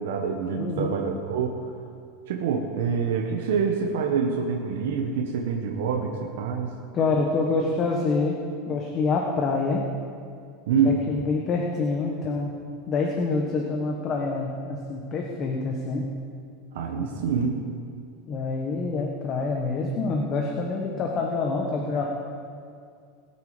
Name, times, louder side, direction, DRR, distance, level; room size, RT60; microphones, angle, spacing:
voice 1, 0.0-1.6 2.3-6.7 10.7-11.0 16.7-17.5, right 5 dB, 80° right, 1 dB, 1.4 m, -26 dB
voice 2, 0.6-0.9 6.9-8.4 8.7-9.8 10.8-12.5 12.9-16.1 17.0-17.1 18.3-22.0, left 3 dB, 30° left, 0 dB, 1.3 m, -26 dB
20.5 x 8.8 x 5.1 m, 2.3 s
supercardioid pair, 155°, 0 cm